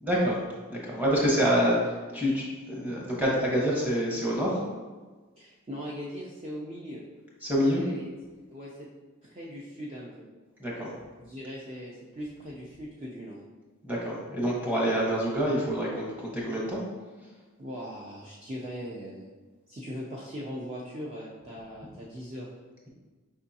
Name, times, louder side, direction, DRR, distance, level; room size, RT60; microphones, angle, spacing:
voice 1, 0.0-0.4 0.7-4.6 7.4-7.8 10.6-10.9 13.8-16.8, equal, 10° right, -4 dB, 1.0 m, -27 dB
voice 2, 5.4-7.0 7.7-8.1 8.5-8.9 9.2-10.3 11.2-13.4 17.6-19.2 19.7-22.5, equal, 30° right, -5 dB, 0.5 m, -40 dB
5.2 x 3.6 x 2.7 m, 1.3 s
head